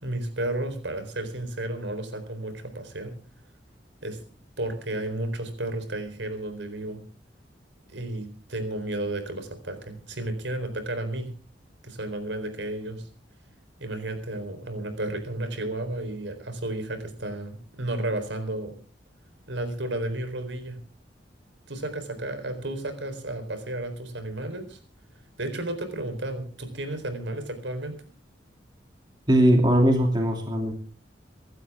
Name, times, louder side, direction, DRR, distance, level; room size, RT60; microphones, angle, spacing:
voice 1, 0.0-3.1 4.0-4.2 4.6-7.0 7.9-11.3 11.8-13.1 13.8-18.7 19.5-20.8 21.7-24.8 25.4-28.1, right 1 dB, 80° right, 8 dB, 4.1 m, -32 dB
voice 2, 29.3-30.7, right 1 dB, 25° right, 2 dB, 2.8 m, -20 dB
25.5 x 12.5 x 3.6 m, 0.39 s
head